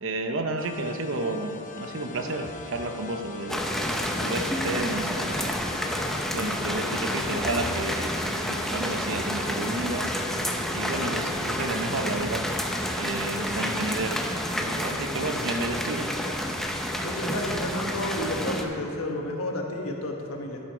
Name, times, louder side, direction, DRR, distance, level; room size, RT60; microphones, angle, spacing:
voice 1, 0.0-3.6 4.2-5.6 6.3-10.1 10.7-12.4 13.0-14.3 14.5-16.1, right 2 dB, 65° right, 5 dB, 0.9 m, -31 dB
sound 1, 0.6-17.5, left 4 dB, 40° left, 0.9 m, -44 dB
sound 2, 2.4-2.9 5.4-5.9 7.4-8.0 10.4-11.2, equal, 20° right, 1.1 m, -42 dB
sound 3, 3.5-18.6, equal, ahead, 0.7 m, -29 dB
voice 2, 17.0-20.6, left 1 dB, 90° left, 1 dB, 1.4 m, -31 dB
12.5 x 7.7 x 5.0 m, 2.7 s
head